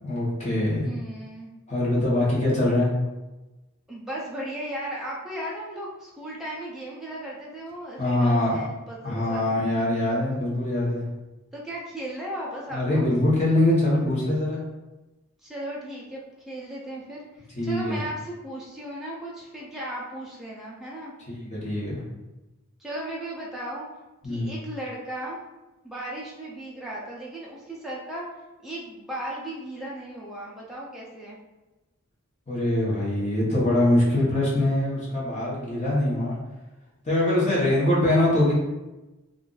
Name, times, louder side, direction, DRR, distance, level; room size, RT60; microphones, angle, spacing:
voice 1, 0.0-0.9 1.7-2.9 8.0-8.6 9.0-11.0 12.7-14.6 17.6-18.0 21.5-22.0 24.2-24.5 32.5-36.4 37.0-38.5, left 1 dB, 30° left, -7 dB, 1.0 m, -23 dB
voice 2, 0.8-1.5 3.9-9.6 11.5-13.1 15.4-21.1 22.8-23.9 24.2-25.4 25.8-28.3 28.6-31.4, right 1 dB, ahead, -6 dB, 0.5 m, -36 dB
2.5 x 2.4 x 3.8 m, 1.1 s
head